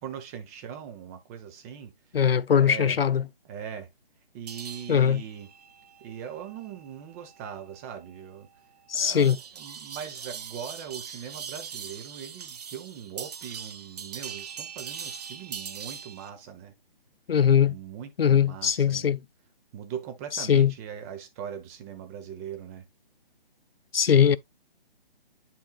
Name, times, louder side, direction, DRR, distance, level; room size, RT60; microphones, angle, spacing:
voice 1, 0.0-1.9 2.5-3.0 3.4-3.9 4.3-5.5 6.0-8.5 8.9-16.7 17.6-19.1 19.7-22.9, right 8 dB, 15° right, 0.9 m, -40 dB
voice 2, 2.1-3.3 4.9-5.2 8.9-9.4 17.3-17.7 18.2-19.2 20.3-20.7 23.9-24.4, left 8 dB, 80° left, 0.6 m, -21 dB
sound 1, 4.5-16.3, right 7 dB, 45° right, 1.0 m, -42 dB
10.5 x 4.5 x 2.3 m
figure-of-eight pair, 145°, 29 cm